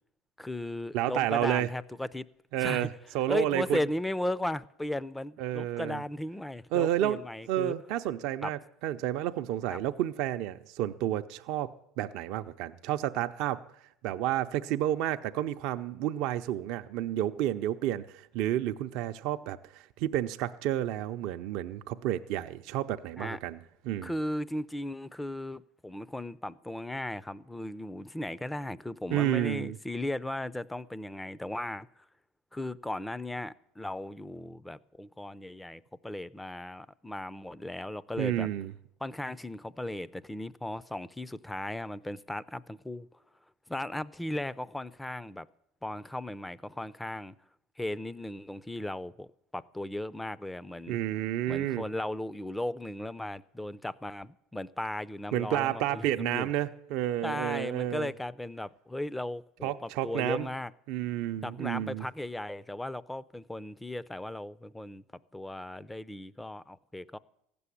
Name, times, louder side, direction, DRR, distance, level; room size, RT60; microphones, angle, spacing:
voice 1, 0.4-2.2 2.6-2.9 3.3-7.7 8.4-8.5 9.7-9.8 23.2-23.4 24.0-31.9 32.5-38.5 39.0-43.1 43.7-45.5 45.8-47.3 47.8-51.0 51.5-56.5 57.2-60.7 61.4-65.0 65.3-67.2, left 1 dB, 10° left, 0.5 m, -36 dB
voice 2, 0.9-1.7 2.5-2.9 3.1-3.8 5.4-6.0 6.7-7.2 7.5-13.6 14.0-23.6 23.8-24.1 29.1-29.8 38.2-38.7 50.9-51.8 55.3-58.1 59.6-60.5 60.9-62.1, right 12 dB, 70° right, 0.5 m, -30 dB
15.5 x 6.9 x 9.9 m
supercardioid pair, 105°, 0 cm